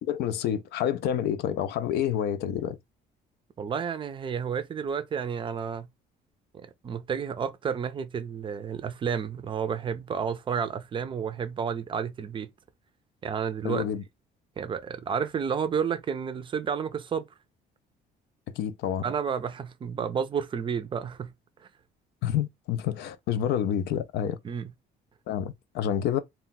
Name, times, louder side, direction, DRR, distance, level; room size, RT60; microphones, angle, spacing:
voice 1, 0.0-2.8 13.6-14.0 18.5-19.1 22.2-24.4 25.3-26.2, left 9 dB, 75° left, 0.4 m, -28 dB
voice 2, 3.6-5.9 6.5-12.5 13.2-13.8 14.6-17.2 19.0-21.3 24.4-24.7, right 7 dB, 30° right, 0.4 m, -31 dB
2.2 x 2.1 x 3.8 m
cardioid pair, 110°, 17 cm